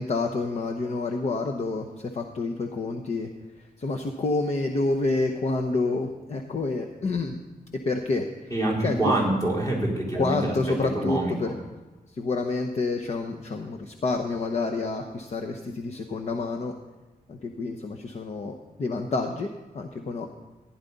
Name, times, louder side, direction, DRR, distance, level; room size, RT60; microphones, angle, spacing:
voice 1, 0.0-3.3 3.6-7.4 7.8-8.5 8.8-9.0 10.2-11.5 12.1-16.8 17.3-19.5 19.7-20.3, left 3 dB, 45° left, 3 dB, 0.8 m, -28 dB
voice 2, 8.5-10.5 10.9-11.5, right 1 dB, 20° left, -4 dB, 3.9 m, -26 dB
15.0 x 10.5 x 4.0 m, 1.2 s
wide cardioid pair, 145°, 15 cm